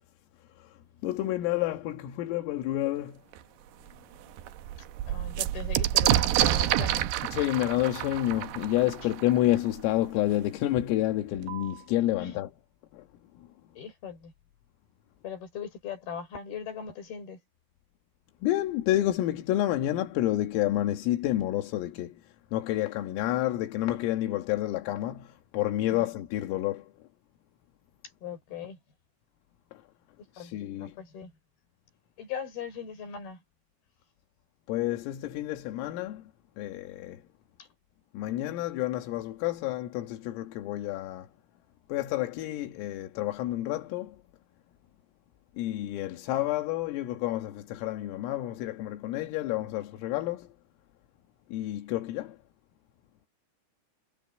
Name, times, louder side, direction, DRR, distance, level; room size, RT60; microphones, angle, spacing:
voice 1, 1.0-3.2 7.3-12.5 12.9-13.1 13.4-13.5 18.4-22.2 22.5-26.9 29.7-29.8 30.4-31.0 34.7-36.3 36.6-37.2 38.1-41.3 41.9-44.2 45.6-50.5 51.5-52.4, left 14 dB, 85° left, 4.2 m, -29 dB
sound 1, 3.3-3.4 3.9-4.0 4.2-9.8 10.8-10.9 11.1-11.7, right 13 dB, 75° right, 2.6 m, -28 dB
voice 2, 5.1-7.1 12.2-12.4 13.8-14.3 15.2-17.4 25.9-26.1 28.2-28.8 30.4-31.3 32.2-33.4, left 7 dB, 50° left, 6.5 m, -39 dB
omnidirectional pair, 5.8 m